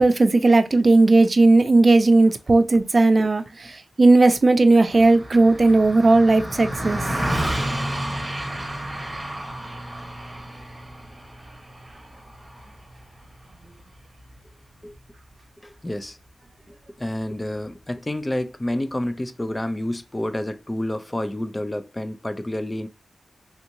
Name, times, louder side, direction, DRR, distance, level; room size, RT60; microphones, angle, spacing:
voice 1, 0.0-7.0, right 2 dB, 50° right, 0.5 m, -16 dB
Car passing by, 4.9-14.5, right 1 dB, 25° right, 1.2 m, -31 dB
voice 2, 15.6-16.2 17.0-22.9, left 1 dB, 25° left, 0.5 m, -29 dB
3.5 x 2.8 x 2.6 m
cardioid pair, 50°, 0 cm